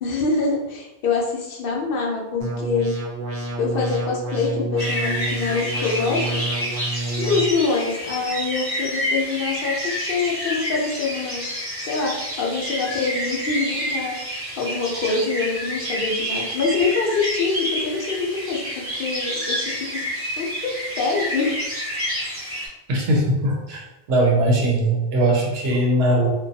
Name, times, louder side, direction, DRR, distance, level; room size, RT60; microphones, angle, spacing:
voice 1, 0.0-2.9 3.6-6.4 7.2-11.5 11.8-14.2 14.6-20.0 20.4-21.6, left 4 dB, 65° left, -1 dB, 0.7 m, -25 dB
sound 1, 2.4-7.4, right 2 dB, 65° right, 0.7 m, -28 dB
sound 2, 4.8-22.7, equal, 15° right, 0.7 m, -28 dB
voice 2, 22.9-23.8 24.1-26.3, right 1 dB, 85° right, -1 dB, 0.9 m, -20 dB
2.6 x 2.2 x 2.6 m, 0.99 s
omnidirectional pair, 1.0 m